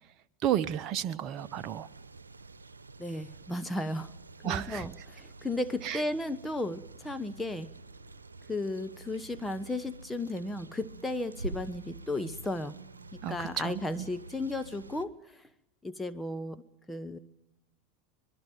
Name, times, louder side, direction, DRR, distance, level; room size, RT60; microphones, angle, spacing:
voice 1, 0.4-1.9 4.4-4.9 5.8-6.0 13.2-13.8, right 10 dB, 45° right, 10 dB, 0.9 m, -32 dB
sound 1, 1.4-15.0, right 3 dB, 90° right, 1.0 m, -47 dB
voice 2, 3.0-4.1 4.4-7.7 8.5-12.7 13.1-15.1 15.8-16.6 16.9-17.2, left 2 dB, 10° left, 9 dB, 1.2 m, -34 dB
24.0 x 22.0 x 9.2 m, 0.88 s
hypercardioid pair, 85°, 0 cm